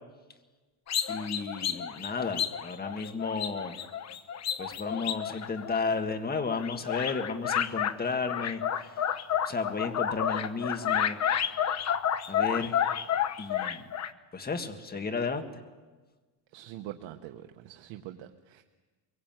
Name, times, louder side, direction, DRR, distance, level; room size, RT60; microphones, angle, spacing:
sound 1, 0.9-6.1 6.5-7.9 8.3-14.1, left 9 dB, 35° left, 1.0 m, -30 dB
voice 1, 1.1-3.8 4.6-9.0 9.4-11.2 12.3-12.8 13.4-13.9 14.3-15.5, left 4 dB, 20° left, 6 dB, 1.9 m, -33 dB
voice 2, 16.5-18.6, right 13 dB, 75° right, 5 dB, 1.3 m, -44 dB
23.5 x 22.5 x 9.1 m, 1.3 s
cardioid pair, 150°, 46 cm